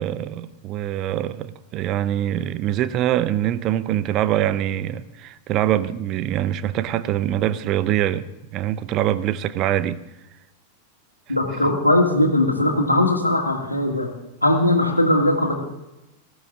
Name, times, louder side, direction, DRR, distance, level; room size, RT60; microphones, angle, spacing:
voice 1, 0.0-10.0, right 12 dB, 35° right, 0.7 m, -24 dB
voice 2, 11.3-14.1 14.4-15.5, left 1 dB, 85° left, 2.1 m, -19 dB
19.0 x 14.5 x 3.7 m
figure-of-eight pair, 90°, 0 cm